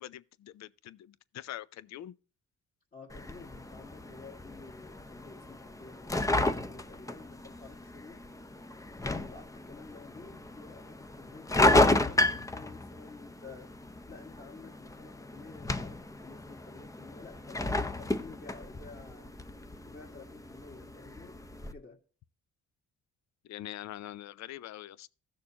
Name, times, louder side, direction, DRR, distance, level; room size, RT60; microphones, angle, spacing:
voice 1, 0.0-2.1 23.4-25.1, left 13 dB, 65° left, 0.5 m, -44 dB
voice 2, 2.9-8.2 9.0-13.7 14.1-19.3 19.8-21.4 21.7-22.0, left 4 dB, 30° left, 1.6 m, -51 dB
sound 1, 3.1-21.7, left 2 dB, 10° left, 0.6 m, -32 dB
15.5 x 6.5 x 2.9 m
cardioid pair, 90°, 30 cm